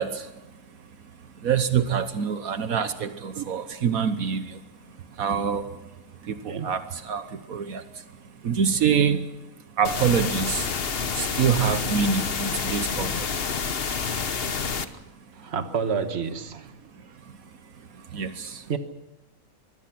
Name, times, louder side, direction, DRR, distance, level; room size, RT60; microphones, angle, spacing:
voice 1, 0.0-13.6 14.6-14.7 15.4-15.5 16.9-18.7, right 7 dB, 75° right, 1.5 m, -27 dB
sound 1, 9.8-14.8, left 5 dB, 45° left, 1.2 m, -28 dB
voice 2, 15.4-16.7 18.7-18.8, right 6 dB, 45° right, 1.5 m, -29 dB
25.0 x 22.0 x 6.0 m
omnidirectional pair, 1.5 m